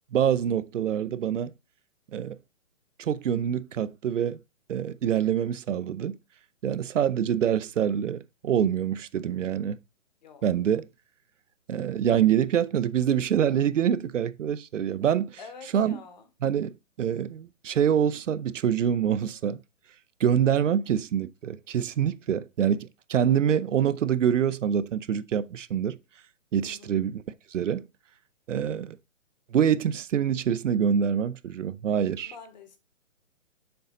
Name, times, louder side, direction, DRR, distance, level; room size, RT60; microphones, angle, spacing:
voice 1, 0.1-1.5 2.1-2.4 3.0-4.4 4.7-6.2 6.6-9.8 10.4-10.9 11.7-15.4 15.7-16.0 16.4-16.7 17.0-19.6 20.2-26.0 26.5-27.2 27.5-27.9 28.5-29.0 29.5-32.3, right 9 dB, 70° right, 0.6 m, -25 dB
voice 2, 15.4-16.3 26.6-26.9 28.6-28.9 32.2-32.8, left 5 dB, 35° left, 1.1 m, -47 dB
6.8 x 4.0 x 3.8 m
hypercardioid pair, 160°, 39 cm